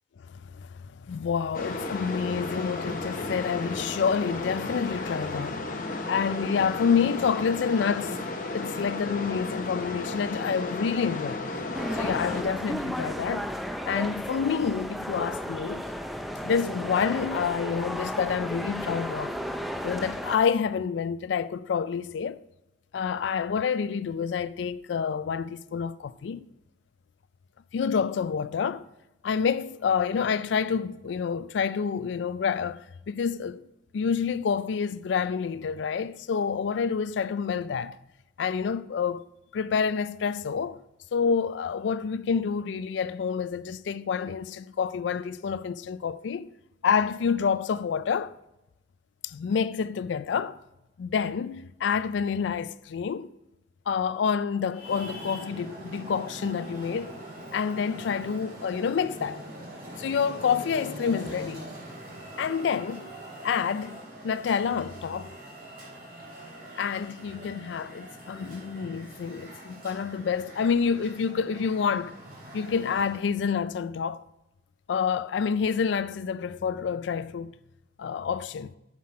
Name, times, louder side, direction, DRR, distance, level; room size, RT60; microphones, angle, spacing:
voice 1, 0.3-5.7 6.1-8.2 8.5-11.5 11.9-13.5 13.9-15.8 16.4-19.4 19.8-22.4 22.9-26.5 27.7-28.9 29.2-33.6 33.9-38.0 38.4-39.2 39.5-40.8 41.1-46.5 46.8-48.3 49.2-50.6 51.0-53.3 53.9-57.2 57.5-59.4 60.0-61.7 62.4-63.1 63.4-64.0 64.2-65.4 66.8-72.2 72.5-74.2 74.9-77.5 78.0-78.8, left 6 dB, 80° left, 0.3 m, -28 dB
sound 1, 1.5-12.4, left 2 dB, 50° left, 0.9 m, -34 dB
sound 2, 11.7-20.4, equal, ahead, 0.4 m, -34 dB
Traffic noise roadway noise, 54.7-73.4, right 1 dB, 50° right, 3.3 m, -43 dB
7.5 x 7.4 x 4.3 m
head